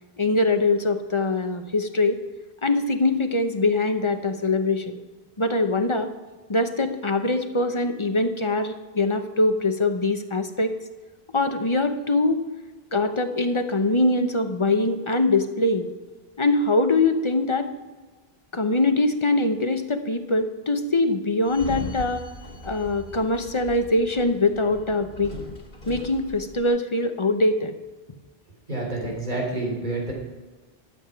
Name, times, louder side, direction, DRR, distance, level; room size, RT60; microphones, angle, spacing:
voice 1, 0.2-2.2 2.6-4.9 5.4-6.1 6.5-10.7 11.3-12.4 12.9-15.9 16.4-17.7 18.5-22.2 22.6-25.3 25.9-27.7, left 2 dB, 30° left, 7 dB, 0.8 m, -23 dB
Sliding door, 21.4-26.7, left 1 dB, 65° left, 2.9 m, -39 dB
voice 2, 28.7-30.1, right 2 dB, 45° right, -2 dB, 3.7 m, -28 dB
12.5 x 7.8 x 5.7 m, 1.3 s
omnidirectional pair, 1.0 m